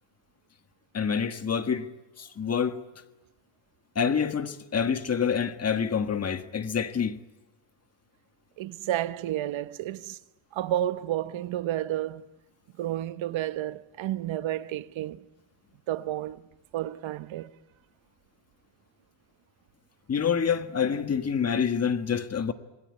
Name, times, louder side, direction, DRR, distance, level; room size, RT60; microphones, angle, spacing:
voice 1, 0.9-1.9 2.2-2.8 3.9-7.2 20.1-22.5, left 7 dB, 35° left, 1.6 m, -27 dB
voice 2, 8.6-10.2 10.5-12.3 12.8-15.2 15.9-16.4 16.7-17.5, right 13 dB, 85° right, 1.1 m, -31 dB
27.5 x 21.0 x 9.6 m
cardioid pair, 145°, 46 cm